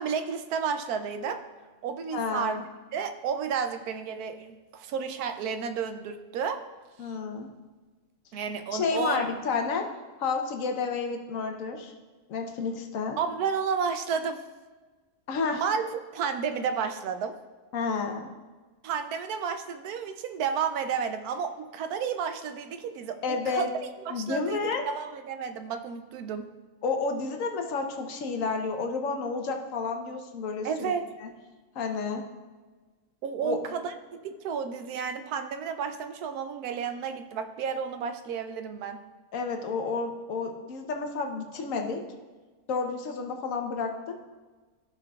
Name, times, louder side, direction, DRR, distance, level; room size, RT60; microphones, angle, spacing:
voice 1, 0.0-1.4 1.8-2.7 2.9-6.6 8.3-9.2 13.2-14.4 15.5-17.4 18.8-23.7 24.1-26.5 30.6-31.1 33.2-33.9 34.2-39.0, right 6 dB, 75° right, 9 dB, 1.1 m, -31 dB
voice 2, 2.1-2.6 7.0-7.5 8.7-9.9 10.2-11.9 12.3-13.2 15.3-15.6 17.7-18.3 23.2-23.7 24.1-24.8 26.8-31.3 31.7-32.2 33.4-33.6 39.3-42.0 42.7-44.2, left 4 dB, 60° left, 4 dB, 1.2 m, -30 dB
14.0 x 5.7 x 2.3 m, 1.3 s
omnidirectional pair, 1.7 m